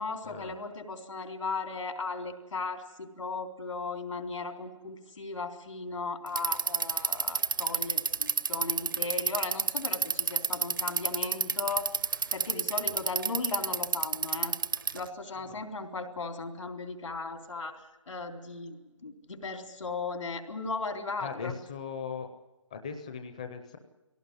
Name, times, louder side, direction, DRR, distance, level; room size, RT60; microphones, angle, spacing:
voice 1, 0.0-12.0 12.3-14.6 14.9-21.5, left 4 dB, 80° left, 5 dB, 3.8 m, -37 dB
Bicycle, 6.3-15.1, right 6 dB, 40° right, 0.7 m, -29 dB
voice 2, 21.2-22.3 22.7-23.8, left 6 dB, 15° left, 5 dB, 0.6 m, -39 dB
20.5 x 17.5 x 9.8 m, 1.1 s
hypercardioid pair, 180°, 16 cm